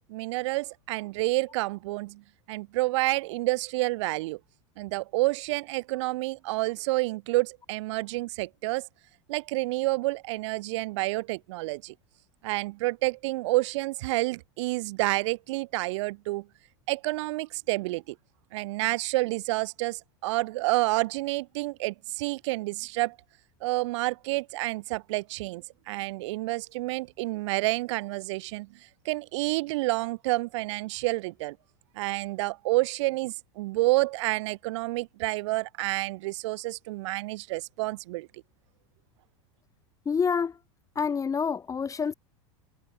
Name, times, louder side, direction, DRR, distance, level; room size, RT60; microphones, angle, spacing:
voice 1, 0.1-2.2 2.5-4.4 4.8-8.8 9.3-11.9 12.4-16.5 16.9-18.2 18.5-23.2 23.6-28.7 29.1-31.6 32.0-38.3, right 21 dB, 70° right, 3.4 m, -29 dB
voice 2, 40.1-40.6 41.0-42.1, left 6 dB, 20° left, 5.1 m, -27 dB
supercardioid pair, 120°, 16 cm